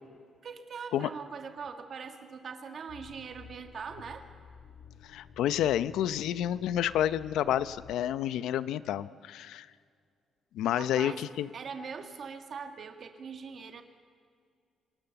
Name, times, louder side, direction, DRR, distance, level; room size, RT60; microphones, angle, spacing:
voice 1, 0.4-4.3 10.7-11.3 11.5-13.8, right 6 dB, 40° right, 6 dB, 1.6 m, -42 dB
sound 1, 2.9-8.0, left 7 dB, 55° left, 1.4 m, -52 dB
voice 2, 5.0-9.7 10.5-11.5, left 11 dB, 90° left, 15 dB, 0.6 m, -29 dB
26.5 x 19.0 x 7.0 m, 2.2 s
cardioid pair, 165°, 0 cm